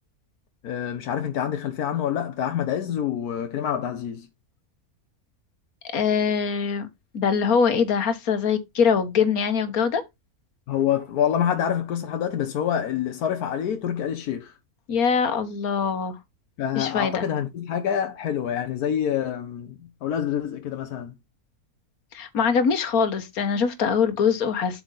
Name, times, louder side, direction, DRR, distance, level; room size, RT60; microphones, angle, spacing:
voice 1, 0.6-4.3 10.7-14.5 16.6-21.1, left 9 dB, 90° left, 1.4 m, -26 dB
voice 2, 5.9-6.9 7.1-10.0 14.9-16.2 16.7-17.2 22.1-24.8, left 6 dB, 75° left, 1.7 m, -23 dB
8.2 x 4.8 x 3.9 m
omnidirectional pair, 1.6 m